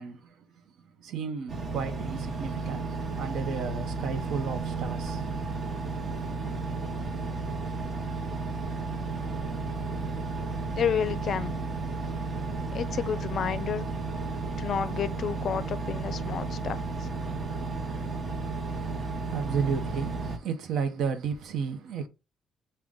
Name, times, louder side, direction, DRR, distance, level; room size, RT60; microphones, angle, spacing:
voice 1, 0.0-5.2 18.7-22.1, right 6 dB, 80° right, 0.6 m, -33 dB
Engine, 1.5-20.4, right 3 dB, 45° right, 0.9 m, -33 dB
voice 2, 10.8-11.6 12.7-13.9 14.6-17.1, left 8 dB, 60° left, 0.4 m, -31 dB
5.0 x 2.2 x 3.5 m
cardioid pair, 90°, 0 cm